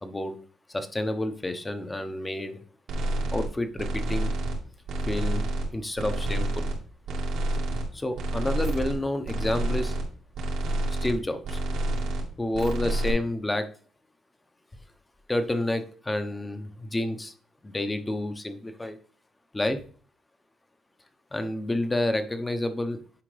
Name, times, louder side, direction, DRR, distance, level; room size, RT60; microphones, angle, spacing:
voice 1, 0.0-0.4 0.7-2.6 3.3-4.3 5.0-5.5 5.7-6.7 7.9-9.9 10.9-11.6 12.4-13.7 15.3-17.3 17.6-19.0 19.5-19.8 21.3-23.0, left 1 dB, 15° left, 8 dB, 1.0 m, -29 dB
sound 1, 2.9-3.5 3.8-4.6 4.9-5.7 6.0-6.8 7.1-7.9 8.2-9.0 9.2-10.0 10.3-11.2 11.4-12.3 12.5-13.1, right 1 dB, 80° right, 2.3 m, -28 dB
9.8 x 4.9 x 3.4 m, 0.42 s
cardioid pair, 90°, 0 cm